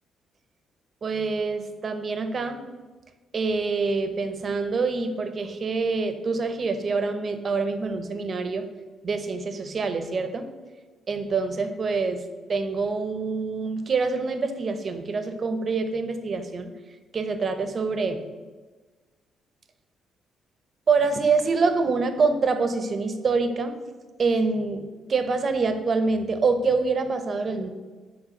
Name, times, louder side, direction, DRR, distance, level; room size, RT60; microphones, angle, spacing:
voice 1, 1.0-2.6 3.3-8.7 9.0-10.5 11.1-12.2 12.5-16.7 17.1-18.2 20.9-23.7 24.2-27.7, right 4 dB, 45° right, 9 dB, 0.8 m, -26 dB
7.6 x 3.6 x 6.3 m, 1.3 s
cardioid pair, 90°, 0 cm